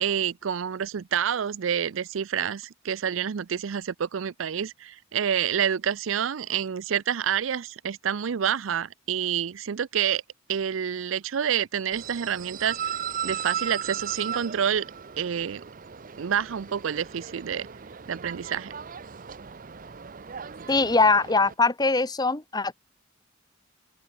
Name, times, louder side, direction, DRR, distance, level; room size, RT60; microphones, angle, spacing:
voice 1, 0.0-10.2 10.5-12.8 13.2-14.8 15.2-15.6 16.2-17.7 18.1-18.7, right 8 dB, 90° right, 0.5 m, -28 dB
sound 1, 11.9-21.5, right 8 dB, 45° right, 0.7 m, -37 dB
voice 2, 20.7-22.7, left 3 dB, 20° left, 1.1 m, -22 dB
open air
head